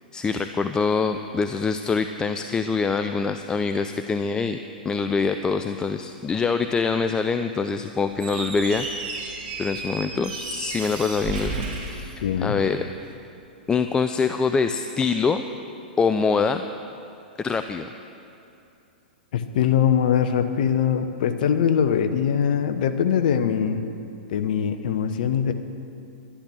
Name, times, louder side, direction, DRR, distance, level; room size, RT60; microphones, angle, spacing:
voice 1, 0.1-4.6 4.8-8.8 9.6-12.8 13.7-15.4 16.0-16.6 17.4-17.9, left 5 dB, 15° left, 8 dB, 0.4 m, -24 dB
Squeak, 8.1-12.8, right 3 dB, 40° right, 3.6 m, -33 dB
voice 2, 12.2-12.6 19.3-23.8 24.3-25.5, left 8 dB, 60° left, 9 dB, 0.9 m, -22 dB
12.0 x 11.5 x 6.2 m, 2.7 s
hypercardioid pair, 110°, 5 cm